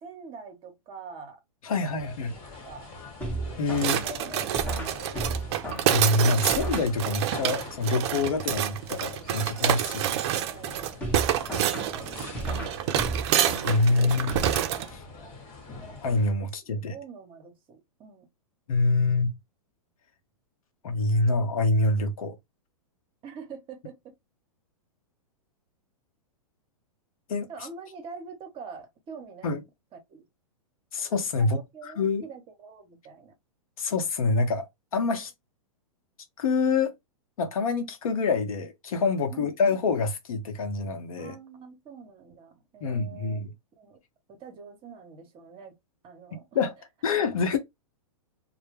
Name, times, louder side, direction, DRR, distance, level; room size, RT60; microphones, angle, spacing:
voice 1, 0.0-1.4 1.7-2.1 2.7-2.9 9.3-11.1 11.4-13.2 16.4-18.3 23.2-24.2 27.5-29.6 30.1-30.2 31.4-33.3 39.3-39.8 41.2-44.0 44.3-45.8 46.0-46.5, right 5 dB, 30° right, 0.8 m, -46 dB
voice 2, 1.6-2.3 3.6-4.0 5.9-10.1 13.6-14.4 14.9-15.0 16.0-16.9 18.7-19.4 20.8-22.4 27.3-27.5 29.4-29.6 30.9-32.3 33.8-34.7 34.9-35.3 36.4-36.9 37.4-41.3 42.8-43.5 46.5-46.8 47.0-47.6, left 3 dB, 75° left, 0.7 m, -26 dB
sound 1, 2.0-16.3, left 3 dB, 30° left, 1.2 m, -44 dB
sound 2, 3.2-7.4 11.0-15.2, right 2 dB, 10° left, 0.8 m, -35 dB
sound 3, 3.8-14.9, right 11 dB, 50° right, 0.4 m, -28 dB
2.1 x 2.0 x 3.1 m
hypercardioid pair, 120°, 18 cm